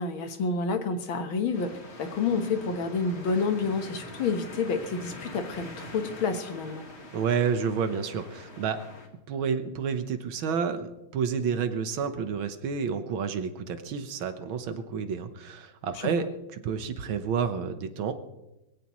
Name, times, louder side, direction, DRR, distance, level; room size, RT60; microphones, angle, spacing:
voice 1, 0.0-1.7 2.0-6.8, left 4 dB, 70° left, 7 dB, 2.0 m, -29 dB
sound 1, 1.5-9.1, left 2 dB, 30° left, 1.9 m, -44 dB
voice 2, 7.1-8.8 9.3-16.3 16.5-18.1, right 6 dB, 70° right, 9 dB, 1.8 m, -30 dB
22.5 x 16.0 x 3.1 m, 0.94 s
omnidirectional pair, 2.3 m